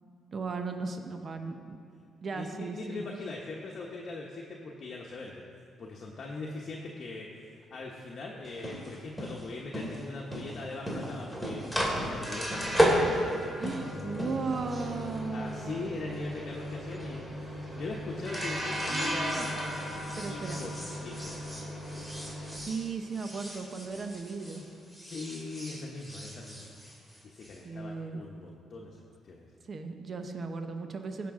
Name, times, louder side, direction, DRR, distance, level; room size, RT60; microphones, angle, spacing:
voice 1, 0.3-1.8 2.2-3.0 13.6-15.9 18.9-19.5 20.2-20.6 22.5-24.6 27.6-28.2 29.7-31.3, right 4 dB, 45° right, 6 dB, 0.9 m, -36 dB
voice 2, 2.3-11.7 12.0-12.6 13.3-13.6 15.3-19.8 20.2-20.7 21.0-21.4 25.0-26.7 26.9-29.5, left 3 dB, 50° left, -2 dB, 1.0 m, -41 dB
sound 1, 8.4-24.6 24.9-27.5, equal, 10° right, 2.3 m, -34 dB
16.0 x 5.9 x 3.7 m, 2.3 s
cardioid pair, 90°, 0 cm